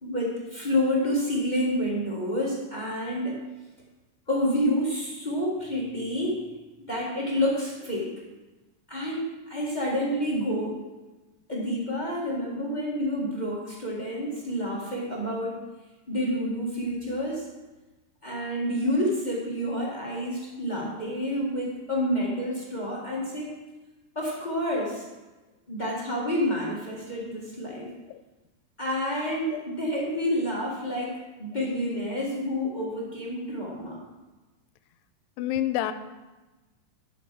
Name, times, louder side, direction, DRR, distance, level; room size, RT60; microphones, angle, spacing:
voice 1, 0.0-3.4 4.3-6.4 6.9-8.1 8.9-10.8 11.5-15.6 16.1-17.5 18.2-23.5 24.1-25.1 25.7-27.9 28.8-34.0, equal, 30° left, -4 dB, 0.8 m, -29 dB
voice 2, 35.4-35.9, left 12 dB, 85° left, 11 dB, 2.3 m, -27 dB
10.5 x 7.8 x 6.1 m, 1.1 s
omnidirectional pair, 3.9 m